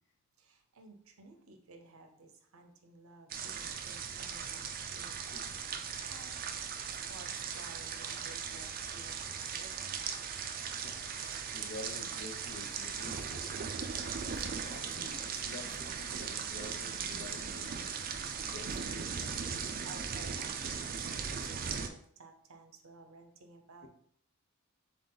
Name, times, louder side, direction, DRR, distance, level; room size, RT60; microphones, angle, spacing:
voice 1, 0.4-5.5 6.1-6.3 6.9-9.8 19.5-23.9, right 3 dB, 65° right, 6 dB, 0.7 m, -55 dB
sound 1, 3.3-21.9, right 6 dB, 40° right, 0.4 m, -38 dB
voice 2, 10.7-13.6 14.2-17.9 18.5-19.1, left 3 dB, 55° left, 5 dB, 0.7 m, -49 dB
3.8 x 3.6 x 3.9 m, 0.63 s
head